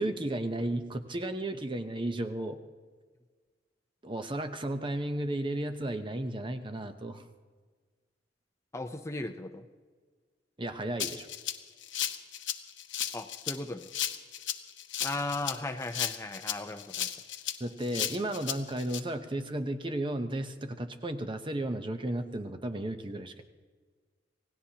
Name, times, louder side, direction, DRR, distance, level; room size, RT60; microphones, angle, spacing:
voice 1, 0.0-2.6 4.0-7.2 10.6-11.3 17.6-23.4, right 1 dB, 25° right, 7 dB, 0.8 m, -34 dB
voice 2, 8.7-9.7 13.1-13.9 15.0-17.1, left 2 dB, 15° left, 6 dB, 0.6 m, -36 dB
Rattle (instrument), 11.0-19.0, left 11 dB, 80° left, 0.9 m, -35 dB
26.5 x 18.0 x 2.9 m, 1.5 s
head